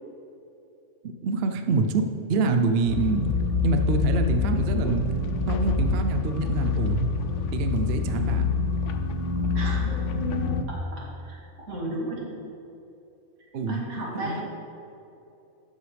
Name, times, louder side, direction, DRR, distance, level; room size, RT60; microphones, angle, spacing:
voice 1, 1.2-3.3 3.6-5.2 5.5-7.1 7.5-8.5 13.5-13.8 14.2-14.4, right 3 dB, 55° right, 6 dB, 0.7 m, -25 dB
sound 1, 2.9-10.6, left 4 dB, 65° left, 0.9 m, -26 dB
voice 2, 9.5-9.9 10.9-11.4 11.7-12.3 13.4-14.4, right 1 dB, 85° right, -5 dB, 2.6 m, -34 dB
12.5 x 7.9 x 3.3 m, 2.9 s
omnidirectional pair, 1.5 m